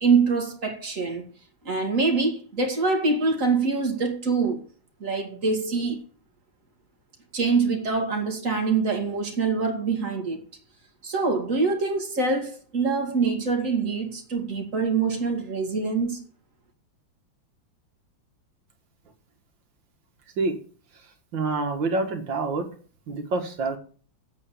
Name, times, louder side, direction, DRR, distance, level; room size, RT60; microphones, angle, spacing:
voice 1, 0.0-1.2 1.6-4.6 5.0-6.0 7.3-10.4 11.0-16.2, right 4 dB, 40° right, 2.4 m, -24 dB
voice 2, 21.3-22.7 23.1-23.8, right 3 dB, 70° right, 2.4 m, -26 dB
8.4 x 8.3 x 6.9 m
omnidirectional pair, 2.1 m